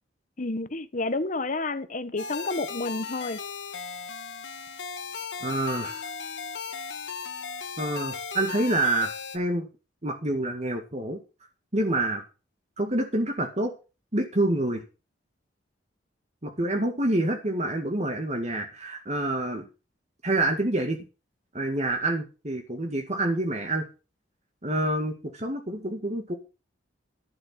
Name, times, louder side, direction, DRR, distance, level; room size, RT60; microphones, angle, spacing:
voice 1, 0.4-3.4, left 2 dB, 45° left, 1.3 m, -30 dB
sound 1, 2.2-9.4, left 6 dB, 80° left, 1.7 m, -37 dB
voice 2, 5.4-6.1 7.8-9.7 10.0-11.2 11.7-12.2 12.8-13.7 14.1-14.8 16.4-19.7 20.2-21.0 21.5-23.9 24.6-26.4, right 1 dB, 40° right, 1.9 m, -27 dB
11.5 x 7.8 x 5.9 m
head